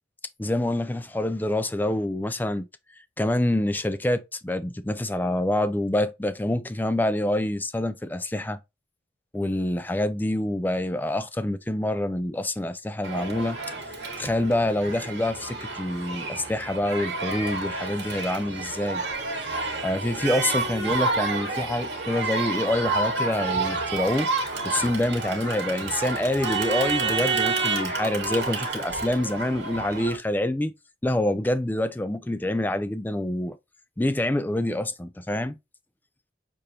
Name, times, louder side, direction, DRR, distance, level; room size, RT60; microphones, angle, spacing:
voice 1, 0.4-2.7 3.2-8.6 9.3-13.6 14.2-19.0 19.5-19.6 19.8-24.3 24.6-30.7 31.0-33.6 34.0-35.6, left 1 dB, 10° left, 0.3 m, -26 dB
Crowd, 13.0-30.2, right 3 dB, 70° right, 1.6 m, -29 dB
6.6 x 2.6 x 2.9 m
head